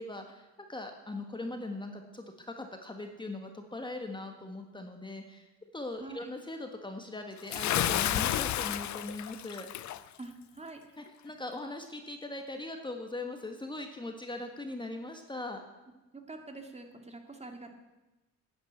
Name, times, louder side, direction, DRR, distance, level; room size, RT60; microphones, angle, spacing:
voice 1, 0.0-5.5 5.7-9.7 11.0-15.6, left 2 dB, 15° left, 4 dB, 1.5 m, -40 dB
voice 2, 6.0-6.3 10.2-10.8 16.1-17.7, right 3 dB, 20° right, 5 dB, 2.2 m, -45 dB
Bathtub (filling or washing) / Splash splatter, 7.5-10.0, left 12 dB, 70° left, 0.7 m, -31 dB
11.0 x 9.6 x 8.6 m, 1.1 s
cardioid pair, 90°, 30 cm